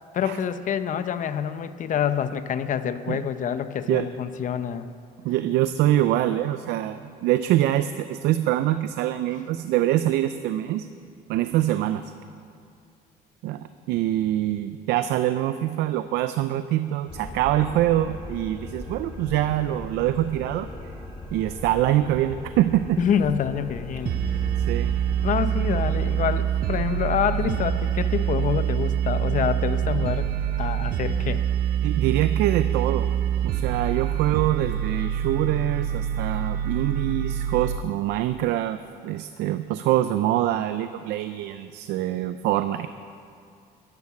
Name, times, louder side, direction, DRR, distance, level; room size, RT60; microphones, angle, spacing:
voice 1, 0.1-4.9 23.0-24.2 25.2-30.3 30.6-31.4, left 8 dB, 50° left, 11 dB, 0.8 m, -26 dB
voice 2, 5.2-10.9 11.3-12.1 13.4-20.7 21.3-23.0 24.7-24.9 31.8-33.1 33.4-42.9, right 13 dB, 85° right, 11 dB, 0.5 m, -24 dB
sound 1, 17.1-26.2, left 1 dB, 25° left, 2.4 m, -38 dB
sound 2, 24.1-37.8, right 9 dB, 60° right, 0.8 m, -25 dB
14.0 x 10.5 x 7.2 m, 2.3 s
cardioid pair, 110°, 17 cm